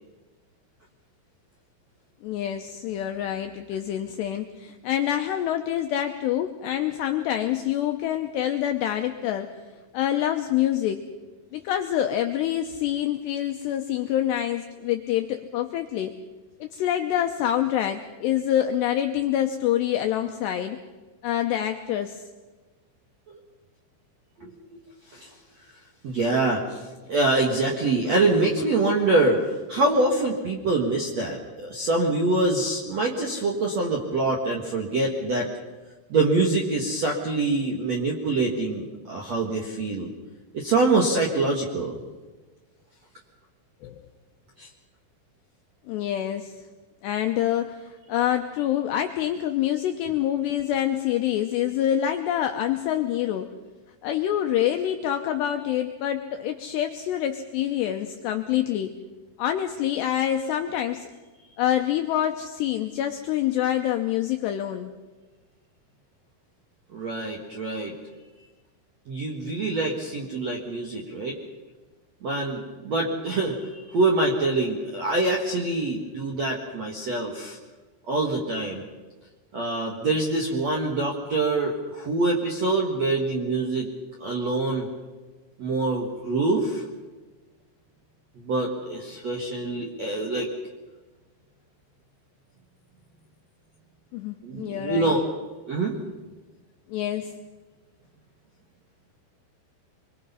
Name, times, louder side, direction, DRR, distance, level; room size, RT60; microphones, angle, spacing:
voice 1, 2.2-9.5 9.9-11.0 11.5-16.2 16.6-20.8 21.2-22.2 43.8-44.0 45.9-46.6 47.0-53.5 54.0-59.0 59.4-61.1 61.6-64.9 94.1-95.2 96.9-97.3, left 11 dB, 85° left, 5 dB, 2.4 m, -26 dB
voice 2, 26.0-26.8 27.1-29.4 29.7-35.5 36.1-40.1 40.5-42.0 44.6-44.7 66.9-67.9 69.1-71.4 72.2-77.6 78.1-78.8 79.5-83.9 84.2-84.9 85.6-86.8 88.4-90.5 94.4-95.3 95.7-96.0, right 2 dB, 65° right, 0 dB, 1.7 m, -25 dB
25.0 x 23.0 x 5.6 m, 1.3 s
omnidirectional pair, 5.9 m